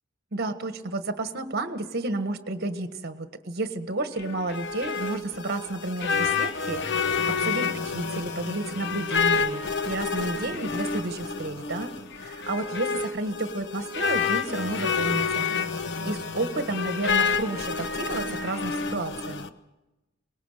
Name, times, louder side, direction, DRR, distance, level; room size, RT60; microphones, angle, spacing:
voice 1, 0.3-15.5 16.0-19.4, right 2 dB, 55° right, 9 dB, 1.6 m, -31 dB
sound 1, 4.2-19.5, left 5 dB, 60° left, 1.0 m, -29 dB
23.0 x 19.5 x 6.7 m, 1.0 s
head